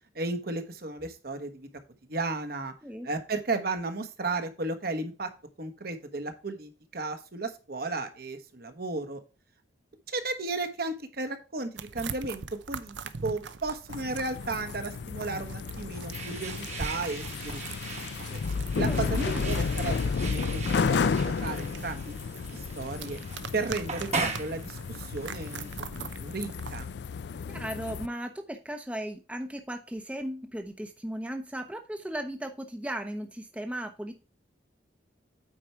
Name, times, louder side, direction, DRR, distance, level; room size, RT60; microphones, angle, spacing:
voice 1, 0.1-1.7 2.1-2.7 3.0-5.3 5.6-9.2 10.1-12.4 12.7-13.0 13.2-17.6 17.9-18.0 18.3-18.4 18.8-20.0 20.2-22.1 22.5-23.2 23.5-25.7 26.0-26.9, right 3 dB, 55° right, 8 dB, 1.2 m, -34 dB
sound 1, 11.8-26.9, right 5 dB, 80° right, 0.7 m, -43 dB
sound 2, 13.9-28.1, left 5 dB, 65° left, 0.4 m, -32 dB
sound 3, 16.1-25.8, right 4 dB, 35° right, 1.2 m, -39 dB
voice 2, 18.9-19.2 27.5-34.1, right 1 dB, 5° right, 5 dB, 0.7 m, -36 dB
8.7 x 4.7 x 4.5 m, 0.32 s
head